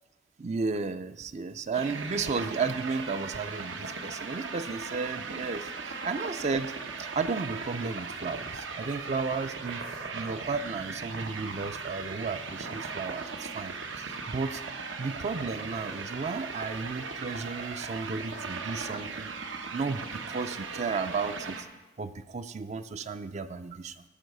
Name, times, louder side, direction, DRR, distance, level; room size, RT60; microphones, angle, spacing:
voice 1, 0.4-6.7 7.0-9.8 10.1-14.6 15.0-19.3 19.7-21.7 22.0-24.0, right 4 dB, 35° right, 10 dB, 0.5 m, -33 dB
sound 1, 1.7-21.6, right 4 dB, 85° right, 1.2 m, -38 dB
14.0 x 6.1 x 6.6 m, 1.0 s
head